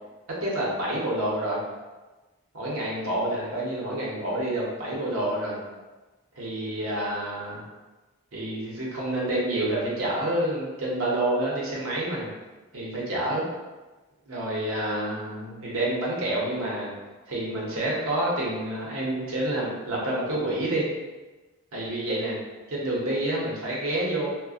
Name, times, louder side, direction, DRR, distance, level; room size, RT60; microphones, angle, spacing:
voice 1, 0.4-1.6 2.5-5.6 6.3-7.6 8.3-12.3 12.7-13.4 14.3-16.9 17.3-20.9 21.7-22.4 22.7-24.3, right 1 dB, 75° right, -5 dB, 0.7 m, -28 dB
2.5 x 2.1 x 2.4 m, 1.2 s
head